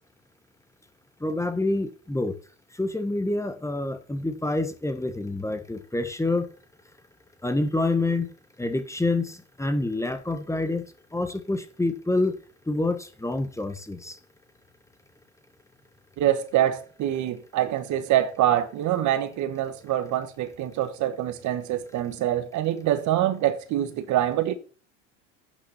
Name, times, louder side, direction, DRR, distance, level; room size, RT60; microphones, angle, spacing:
voice 1, 1.2-2.3 2.8-6.5 7.4-8.3 8.6-10.8 11.1-12.3 12.7-14.2, left 2 dB, 10° left, 1.3 m, -27 dB
voice 2, 16.2-24.6, right 12 dB, 55° right, 1.3 m, -25 dB
8.7 x 6.2 x 5.5 m
hypercardioid pair, 80°, 36 cm